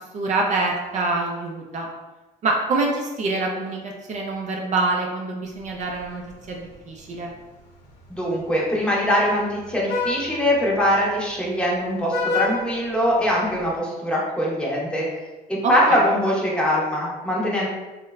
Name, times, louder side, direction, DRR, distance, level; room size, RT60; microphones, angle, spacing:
voice 1, 0.1-1.9 2.4-7.3 15.6-16.2, right 3 dB, 45° right, 0 dB, 0.4 m, -26 dB
Vehicle horn car horn honking, 5.6-13.7, left 3 dB, 75° left, 0.6 m, -33 dB
voice 2, 8.1-15.1 15.5-17.7, equal, 5° left, -4 dB, 0.7 m, -22 dB
2.9 x 2.1 x 2.3 m, 1.1 s
cardioid pair, 110°, 17 cm